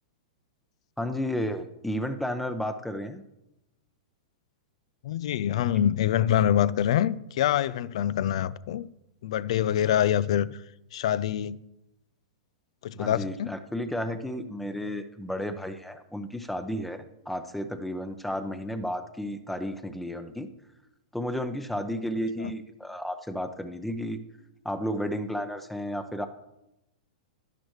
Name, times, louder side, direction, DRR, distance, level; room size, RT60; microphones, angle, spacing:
voice 1, 1.0-3.2 12.9-20.5 21.1-24.2 24.6-26.3, equal, 5° left, 0.7 m, -32 dB
voice 2, 5.0-8.9 9.2-10.6 10.9-11.6 12.8-13.5 22.4-22.5, left 10 dB, 65° left, 0.4 m, -25 dB
11.5 x 11.0 x 3.2 m
hypercardioid pair, 115°, 3 cm